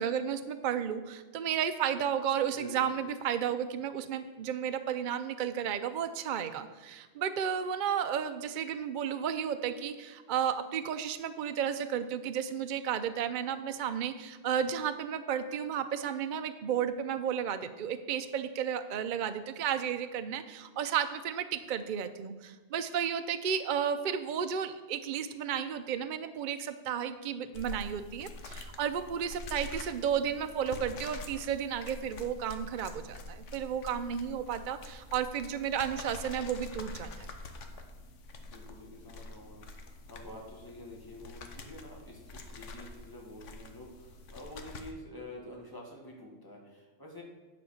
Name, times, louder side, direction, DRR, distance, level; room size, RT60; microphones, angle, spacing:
voice 1, 0.0-37.3, right 8 dB, 55° right, 9 dB, 0.6 m, -33 dB
sound 1, 27.5-44.9, left 2 dB, 85° left, 1.3 m, -46 dB
voice 2, 38.4-47.2, left 1 dB, 20° left, -1 dB, 1.9 m, -48 dB
9.6 x 5.2 x 6.4 m, 1.3 s
omnidirectional pair, 1.2 m